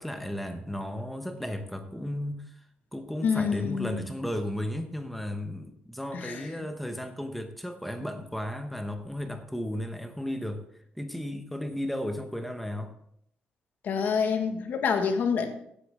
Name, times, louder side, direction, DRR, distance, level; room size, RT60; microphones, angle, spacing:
voice 1, 0.0-2.6 2.9-10.6 10.9-12.9, left 1 dB, ahead, 6 dB, 1.0 m, -34 dB
voice 2, 3.2-4.0 6.1-6.5 13.8-15.5, left 6 dB, 60° left, 5 dB, 1.5 m, -27 dB
15.5 x 8.4 x 3.6 m, 0.72 s
cardioid pair, 155°, 4 cm